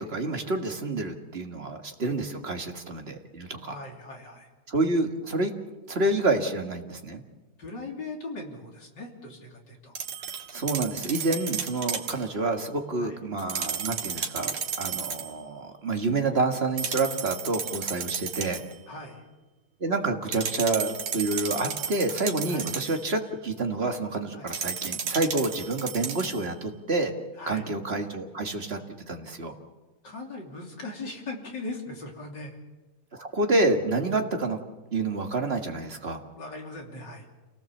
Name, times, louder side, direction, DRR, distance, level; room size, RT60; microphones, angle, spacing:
voice 1, 0.0-3.7 4.7-5.5 5.9-7.2 10.5-18.6 19.8-27.1 27.5-28.8 29.1-29.5 33.1-34.6 34.9-36.2, right 2 dB, 30° right, 4 dB, 1.8 m, -28 dB
voice 2, 3.6-4.5 7.6-9.9 13.0-13.2 18.9-19.2 22.5-22.7 24.3-24.5 27.4-27.6 30.0-32.6 36.4-37.3, left 2 dB, 55° left, 1 dB, 3.8 m, -39 dB
sound 1, 10.0-12.2 13.4-15.3 16.8-18.7 20.3-23.0 24.5-26.5, right 7 dB, 85° right, 2.5 m, -33 dB
28.5 x 18.5 x 7.3 m, 1.2 s
omnidirectional pair, 2.4 m